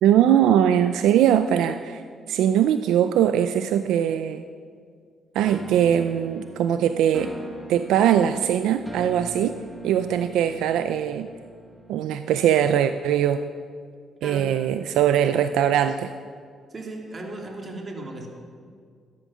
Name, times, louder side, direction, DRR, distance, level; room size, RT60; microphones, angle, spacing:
voice 1, 0.0-2.0 2.3-4.4 5.3-7.3 7.7-11.3 11.9-13.4 14.2-16.1, right 10 dB, 90° right, 10 dB, 0.5 m, -21 dB
sound 1, 5.4-12.3, right 2 dB, 5° right, 2.6 m, -41 dB
voice 2, 16.7-18.3, right 2 dB, 35° right, 1 dB, 2.9 m, -36 dB
16.0 x 13.0 x 6.3 m, 2.1 s
cardioid pair, 90°, 0 cm